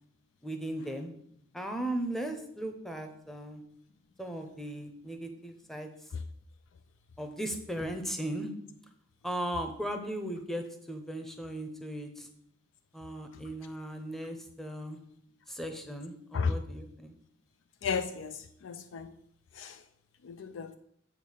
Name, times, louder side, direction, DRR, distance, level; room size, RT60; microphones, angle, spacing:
voice 1, 0.4-1.1 1.5-3.6 4.2-6.1 7.2-8.5 9.2-12.3 12.9-15.0 15.5-17.2, right 1 dB, ahead, 5 dB, 0.7 m, -37 dB
voice 2, 17.8-19.1 19.5-19.8 20.2-20.7, left 5 dB, 75° left, 9 dB, 0.4 m, -34 dB
7.2 x 3.6 x 6.3 m, 0.70 s
head